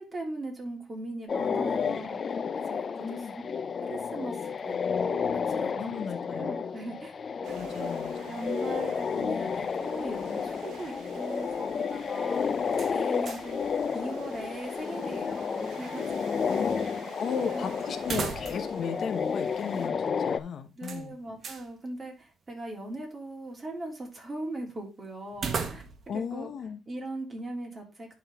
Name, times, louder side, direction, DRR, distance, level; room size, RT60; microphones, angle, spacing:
voice 1, 0.0-2.4 2.7-3.4 3.8-7.1 7.4-7.9 8.2-16.9 17.4-17.8 20.8-25.8 26.1-26.5 26.9-28.2, right 2 dB, 25° right, -1 dB, 3.1 m, -40 dB
sound 1, 1.3-20.4, left 6 dB, 45° left, 0.4 m, -31 dB
voice 2, 3.0-3.4 5.8-6.6 7.5-8.1 16.5-16.8 17.1-21.2 26.1-26.8, left 6 dB, 60° left, 9 dB, 0.9 m, -35 dB
sound 2, 7.4-19.9, right 8 dB, 85° right, 0.8 m, -50 dB
sound 3, 12.7-13.6 13.9-14.0 18.0-18.8 19.1-19.2 20.8-21.7 25.3-26.2, right 5 dB, 50° right, 1.1 m, -36 dB
11.0 x 4.0 x 3.4 m, 0.27 s
cardioid pair, 90°, 0 cm